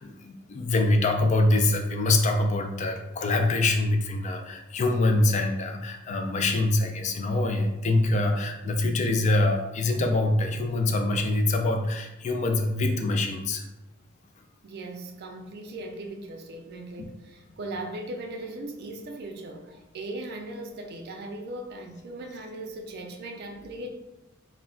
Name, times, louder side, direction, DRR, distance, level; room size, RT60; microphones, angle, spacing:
voice 1, 0.0-13.7, left 2 dB, 35° left, 0.3 m, -24 dB
voice 2, 14.4-23.9, right 2 dB, 50° right, 0.4 m, -38 dB
2.2 x 2.1 x 3.6 m
head